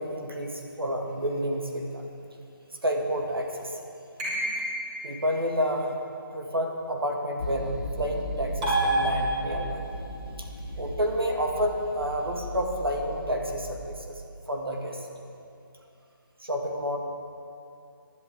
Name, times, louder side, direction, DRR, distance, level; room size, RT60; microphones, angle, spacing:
voice 1, 0.0-2.1 2.8-3.8 5.0-6.0 6.3-9.9 10.4-10.5 10.8-15.1 16.4-17.0, equal, 90° right, 2 dB, 1.9 m, -30 dB
sound 1, 4.2-5.1 8.6-9.8, right 2 dB, 20° right, 2.1 m, -27 dB
sound 2, 7.4-13.9, equal, 15° left, 0.4 m, -37 dB
16.0 x 10.5 x 3.5 m, 2.6 s
figure-of-eight pair, 165°, 12 cm